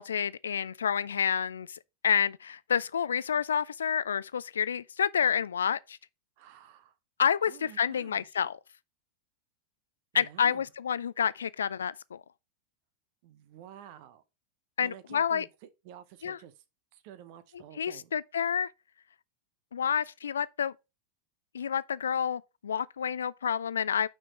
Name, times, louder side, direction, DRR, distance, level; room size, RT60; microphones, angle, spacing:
voice 1, 0.0-6.0 7.2-8.6 10.1-12.2 14.8-15.5 16.2-16.4 17.8-18.7 19.7-20.7 21.5-24.1, left 7 dB, 70° left, 0.4 m, -29 dB
voice 2, 6.4-7.0 7.4-8.3 10.1-10.7 13.2-14.2 14.8-16.6 16.9-18.1, right 11 dB, 45° right, 0.7 m, -51 dB
6.1 x 4.5 x 5.1 m
figure-of-eight pair, 90°, 0 cm